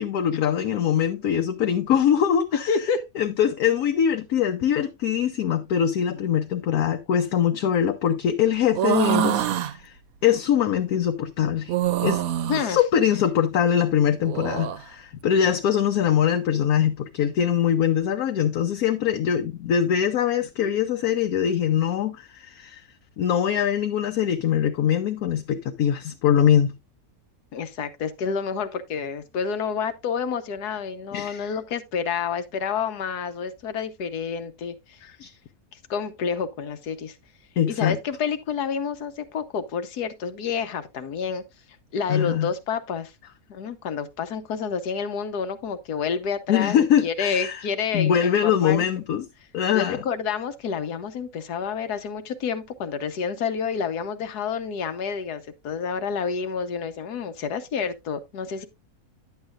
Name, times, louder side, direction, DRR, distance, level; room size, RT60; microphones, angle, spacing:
voice 1, 0.0-2.7 3.2-10.0 10.2-11.7 12.0-12.2 12.6-22.8 23.2-26.7 31.1-31.5 35.2-35.3 37.6-38.0 42.1-42.5 46.5-47.6 47.9-49.2 49.5-50.0, left 9 dB, 70° left, 1.2 m, -22 dB
voice 2, 2.7-3.0 12.5-12.8 27.5-35.0 35.7-37.2 37.7-41.4 41.9-43.1 43.5-48.8 49.7-58.7, left 6 dB, 90° left, 1.5 m, -29 dB
sound 1, 8.7-9.7 11.7-12.7 14.2-14.8, right 10 dB, 70° right, 1.0 m, -24 dB
10.5 x 7.9 x 2.4 m
omnidirectional pair, 1.6 m